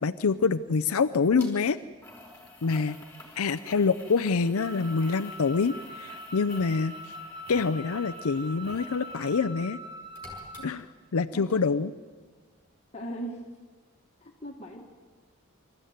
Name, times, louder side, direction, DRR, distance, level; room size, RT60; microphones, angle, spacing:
voice 1, 0.0-1.8 2.6-3.0 3.4-6.9 7.5-9.8 10.6-11.9, left 4 dB, 85° left, 9 dB, 0.6 m, -26 dB
sound 1, 1.4-1.5 2.0-9.5 9.8-11.2 11.5-11.6, left 2 dB, 10° left, 4.9 m, -50 dB
Wind instrument woodwind instrument, 4.5-10.8, equal, 20° right, 2.7 m, -43 dB
voice 2, 12.9-13.4 14.2-14.8, right 1 dB, 30° left, 0 dB, 1.7 m, -38 dB
26.0 x 14.0 x 9.4 m, 1.5 s
head